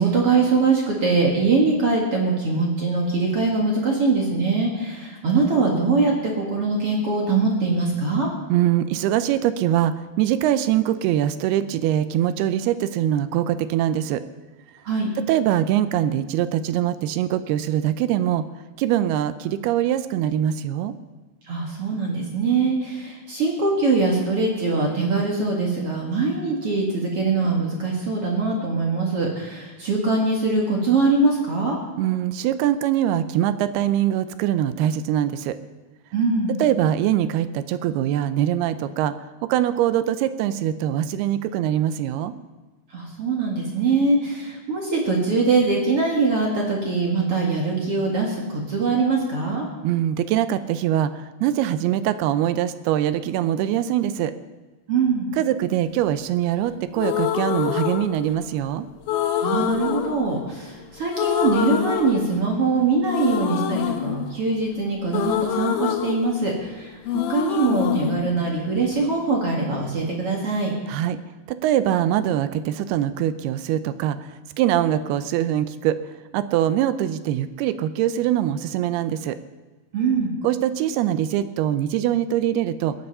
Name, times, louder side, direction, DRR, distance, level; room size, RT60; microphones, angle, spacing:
voice 1, 0.0-8.3 14.8-15.1 21.5-31.8 36.1-36.6 42.9-49.7 54.9-55.3 59.4-70.7 79.9-80.3, right 3 dB, 45° right, -1 dB, 2.2 m, -22 dB
voice 2, 8.5-14.2 15.3-18.4 18.8-20.9 32.0-35.6 36.6-39.1 39.4-42.3 49.8-54.3 55.4-58.9 70.9-71.2 71.5-76.0 76.3-79.4 80.4-83.0, right 11 dB, 80° right, 12 dB, 2.5 m, -23 dB
sound 1, 57.0-58.6 59.1-60.8 61.1-62.7 63.1-66.8 67.1-69.1, left 10 dB, 80° left, 1.8 m, -26 dB
21.5 x 7.9 x 5.5 m, 1.3 s
omnidirectional pair, 4.7 m